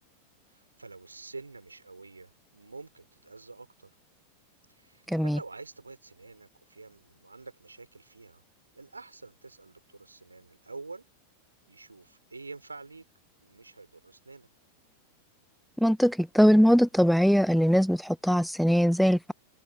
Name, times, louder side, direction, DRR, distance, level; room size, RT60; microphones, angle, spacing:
voice 1, 0.5-3.9 4.7-8.4 8.8-11.0 11.7-13.0 13.4-14.5, right 3 dB, 80° right, 4.1 m, -47 dB
voice 2, 5.1-5.4 15.8-19.3, equal, ahead, 0.5 m, -21 dB
figure-of-eight pair, 90°, 0 cm